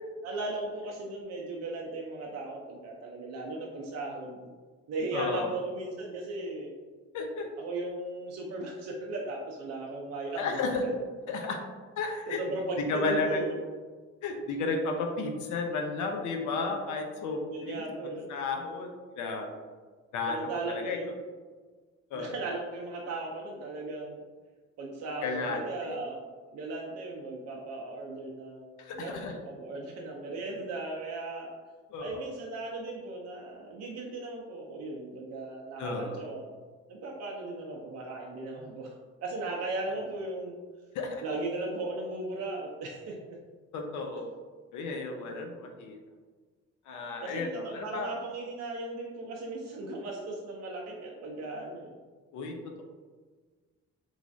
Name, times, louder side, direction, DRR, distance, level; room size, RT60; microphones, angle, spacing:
voice 1, 0.2-4.5 4.9-6.7 7.6-10.9 12.3-13.6 17.5-18.3 20.3-21.2 22.1-24.2 24.8-26.2 26.5-31.5 32.0-36.6 36.9-38.9 39.2-40.5 41.2-43.4 47.2-52.0, right 2 dB, 60° right, -2 dB, 0.5 m, -37 dB
voice 2, 5.1-5.5 7.1-7.5 10.4-10.8 11.3-11.6 12.0-12.4 12.9-13.4 14.2-18.9 19.2-19.5 20.1-21.0 22.1-22.3 25.2-26.0 28.8-29.4 31.9-32.3 35.8-36.2 40.9-41.2 43.7-44.3 44.7-46.0 46.9-48.1 52.3-52.8, left 3 dB, 75° left, 3 dB, 0.5 m, -33 dB
3.1 x 2.4 x 2.5 m, 1.5 s
cardioid pair, 90°, 30 cm